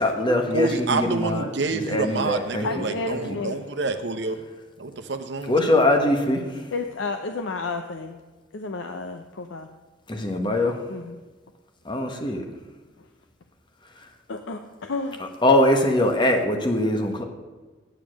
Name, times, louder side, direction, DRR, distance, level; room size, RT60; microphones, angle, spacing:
voice 1, 0.0-1.5 1.9-2.9 3.3-3.4 5.5-6.6 10.1-10.8 11.8-12.4 15.4-17.2, left 1 dB, 25° left, 4 dB, 1.1 m, -22 dB
voice 2, 0.5-4.4 4.8-5.5, right 3 dB, 65° right, 8 dB, 0.9 m, -27 dB
voice 3, 2.6-3.6 6.7-8.2 8.5-9.7 10.9-11.2 13.0-13.1 14.3-15.2, left 3 dB, 80° left, 6 dB, 0.6 m, -31 dB
8.9 x 7.1 x 6.3 m, 1.3 s
head